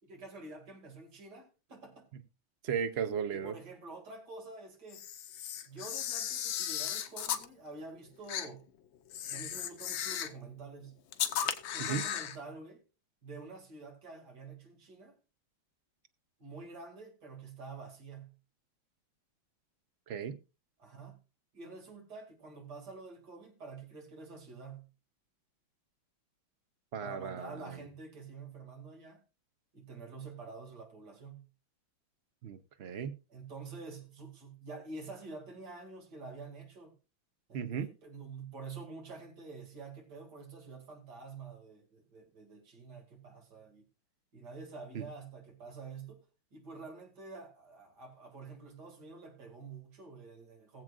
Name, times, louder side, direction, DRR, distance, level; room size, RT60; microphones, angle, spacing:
voice 1, 0.0-2.1 3.3-5.0 5.7-8.6 9.3-11.0 11.7-12.8 13.2-15.2 16.4-18.3 20.8-21.2 21.5-24.9 27.0-29.2 29.7-31.5 33.3-36.9 37.5-43.8 44.3-46.2 46.5-50.8, right 4 dB, 55° right, 2.8 m, -48 dB
voice 2, 2.6-3.6 11.8-12.0 20.1-20.4 26.9-27.7 32.4-33.2 37.5-37.9 44.9-45.0, right 7 dB, 70° right, 0.6 m, -35 dB
Camera, 4.9-7.5 8.3-8.5 9.1-10.4 11.1-12.4, left 9 dB, 80° left, 1.7 m, -36 dB
20.5 x 7.6 x 2.5 m
omnidirectional pair, 2.2 m